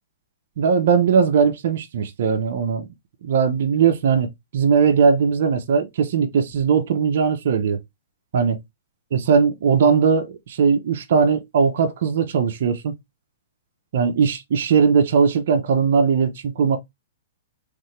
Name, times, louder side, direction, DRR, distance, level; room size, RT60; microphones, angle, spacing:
voice 1, 0.6-2.9 3.2-7.8 8.3-8.6 9.1-12.9 13.9-16.8, right 6 dB, 65° right, 0.8 m, -19 dB
3.8 x 3.2 x 3.2 m
hypercardioid pair, 140°, 0 cm